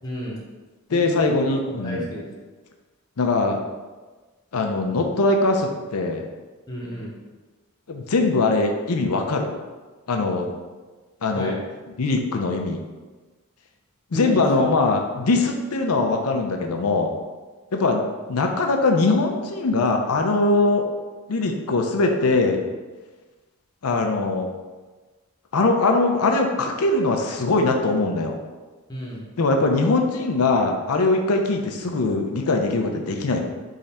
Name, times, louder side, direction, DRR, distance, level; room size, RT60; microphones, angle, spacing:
voice 1, 0.0-0.4 0.9-2.3 6.7-7.1 11.3-11.6 14.1-14.8 28.9-29.3, equal, 15° left, -4 dB, 0.8 m, -32 dB
voice 2, 0.9-2.1 3.2-3.6 4.5-6.3 7.9-9.6 10.1-10.5 11.2-11.5 12.0-12.8 14.1-17.1 17.7-20.9 21.3-22.6 23.8-24.5 25.5-28.4 29.4-33.4, left 3 dB, 90° left, 3 dB, 0.6 m, -21 dB
3.7 x 3.3 x 4.1 m, 1.3 s
head